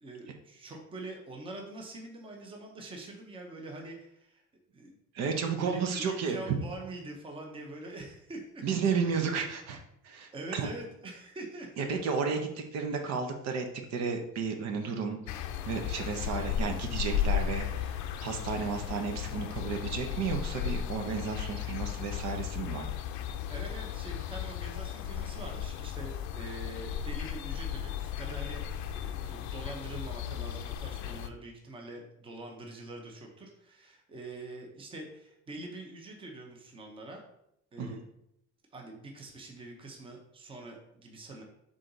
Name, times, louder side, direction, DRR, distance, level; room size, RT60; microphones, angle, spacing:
voice 1, 0.0-5.0 5.2-8.7 10.3-12.0 23.5-37.2 37.7-38.0 38.7-41.4, right 2 dB, 20° right, 1 dB, 0.8 m, -44 dB
voice 2, 5.1-6.4 8.6-10.7 11.8-15.4 15.6-22.9 37.8-38.0, right 5 dB, 65° right, 4 dB, 0.9 m, -33 dB
sound 1, 15.3-31.3, left 9 dB, 80° left, 0.5 m, -35 dB
6.3 x 3.9 x 4.0 m, 0.77 s
cardioid pair, 180°, 29 cm